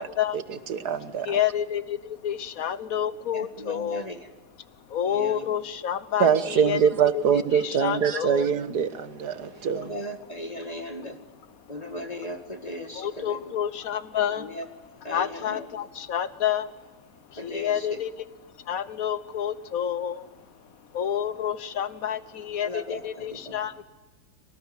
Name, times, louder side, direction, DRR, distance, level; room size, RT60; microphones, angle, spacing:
voice 1, 0.0-0.7 1.2-4.1 4.9-7.2 7.5-8.5 9.3-9.7 10.6-12.0 12.2-12.3 12.8-16.9 17.3-23.8, left 9 dB, 50° left, 14 dB, 1.3 m, -30 dB
voice 2, 0.7-1.4 6.2-9.9, right 7 dB, 50° right, 12 dB, 1.7 m, -24 dB
voice 3, 3.3-4.2 5.1-5.4 9.5-11.2 11.7-13.4 14.4-14.6 15.0-15.6 17.4-17.9 22.6-23.5, equal, 20° left, 6 dB, 2.1 m, -37 dB
24.5 x 19.5 x 9.8 m, 1.1 s
omnidirectional pair, 2.3 m